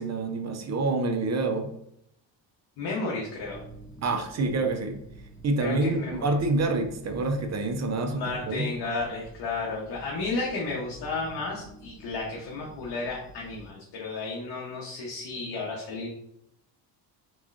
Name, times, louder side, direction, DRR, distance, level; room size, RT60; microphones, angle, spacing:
voice 1, 0.0-1.7 4.0-5.0 5.4-8.7, right 3 dB, 40° right, 5 dB, 0.5 m, -27 dB
voice 2, 2.8-3.6 5.6-6.2 8.1-16.1, left 3 dB, 60° left, -3 dB, 1.0 m, -33 dB
sound 1, 3.4-13.7, right 2 dB, 25° left, 1.3 m, -48 dB
3.5 x 3.1 x 2.5 m, 0.75 s
cardioid pair, 100°, 45 cm